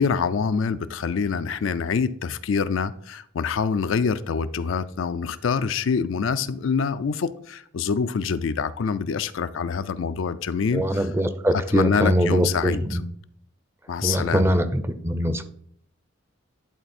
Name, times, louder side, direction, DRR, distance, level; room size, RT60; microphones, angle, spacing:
voice 1, 0.0-11.1 11.7-13.0 13.9-14.5, left 5 dB, 70° left, 12 dB, 0.4 m, -25 dB
voice 2, 10.7-13.0 14.0-15.4, equal, 10° right, 11 dB, 0.5 m, -22 dB
10.5 x 4.0 x 4.3 m, 0.64 s
head